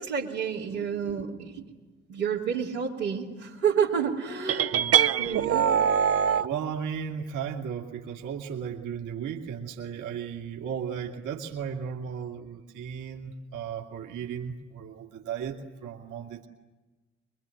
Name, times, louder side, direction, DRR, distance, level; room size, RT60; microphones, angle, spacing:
voice 1, 0.0-1.7 2.1-4.7 5.2-5.7, right 7 dB, 80° right, -7 dB, 3.2 m, -29 dB
sound 1, 4.5-6.5, right 8 dB, 45° right, 0.9 m, -23 dB
voice 2, 6.4-16.5, right 7 dB, 60° right, 1 dB, 2.7 m, -35 dB
24.5 x 23.5 x 10.0 m, 1.2 s
figure-of-eight pair, 40°, 34 cm